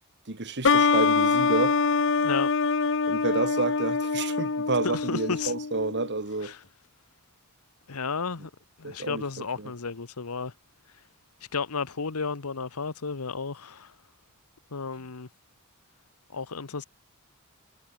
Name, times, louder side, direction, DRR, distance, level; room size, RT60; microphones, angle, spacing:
voice 1, 0.3-1.8 3.1-6.5 8.8-9.2 9.6-9.7, right 3 dB, 55° right, 2.1 m, -29 dB
sound 1, 0.6-6.1, left 4 dB, 60° left, 0.9 m, -24 dB
voice 2, 4.8-5.5 6.4-6.6 7.9-8.5 8.8-10.5 11.5-13.9 14.7-15.3 16.3-16.8, left 4 dB, 90° left, 1.1 m, -32 dB
head